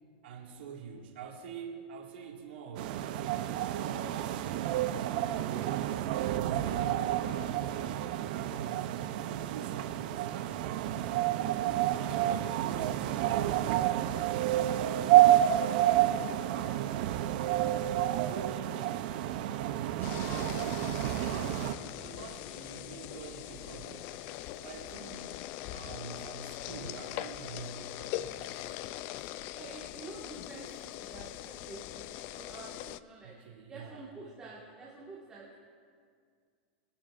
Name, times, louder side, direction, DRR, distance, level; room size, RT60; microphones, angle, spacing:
voice 1, 0.2-4.5 4.9-7.9 8.3-11.5 11.9-13.4 16.4-16.9 17.8-24.1 24.6-25.4 25.7-28.8 33.2-34.1, right 5 dB, 85° right, -1 dB, 2.0 m, -46 dB
sound 1, 2.8-21.8, right 13 dB, 55° right, 0.6 m, -29 dB
voice 2, 14.7-15.0 29.5-33.3 33.7-35.5, right 3 dB, 15° right, -5 dB, 1.7 m, -49 dB
sound 2, 20.0-33.0, left 14 dB, 40° left, 0.3 m, -42 dB
23.0 x 12.0 x 2.5 m, 2.1 s
supercardioid pair, 160°, 5 cm